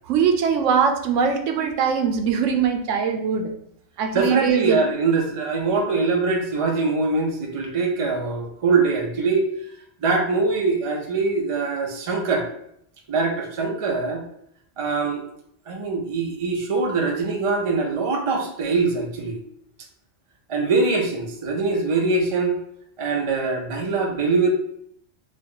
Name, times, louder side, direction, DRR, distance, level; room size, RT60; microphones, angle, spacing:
voice 1, 0.1-3.5 4.0-4.8, right 6 dB, 85° right, 5 dB, 0.9 m, -21 dB
voice 2, 4.1-9.5 10.0-12.5 13.1-14.2 14.8-15.2 15.7-19.4 20.5-22.6 23.0-24.5, right 4 dB, 40° right, 1 dB, 0.5 m, -23 dB
3.8 x 2.2 x 3.7 m, 0.72 s
omnidirectional pair, 1.2 m